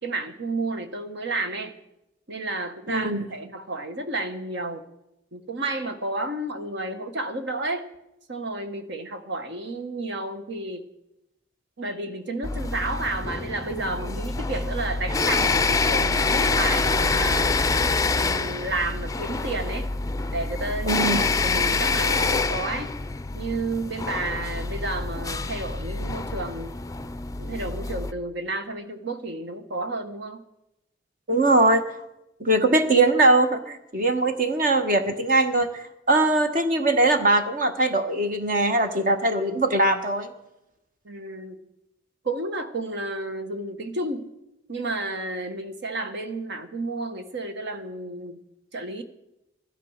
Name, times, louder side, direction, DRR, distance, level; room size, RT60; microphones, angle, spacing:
voice 1, 0.0-1.7 2.3-4.8 5.3-7.9 8.3-10.9 11.8-17.6 18.2-19.9 20.3-22.9 23.3-26.7 27.4-30.4 41.0-41.6 42.2-44.3 44.7-48.4 48.7-49.0, right 2 dB, 60° right, 8 dB, 1.5 m, -31 dB
voice 2, 2.9-3.2 20.8-21.2 31.3-31.8 32.4-40.3, right 2 dB, 45° right, 7 dB, 1.3 m, -21 dB
sound 1, 12.4-28.1, left 3 dB, 15° left, 0.5 m, -26 dB
15.5 x 12.0 x 6.5 m, 0.90 s
head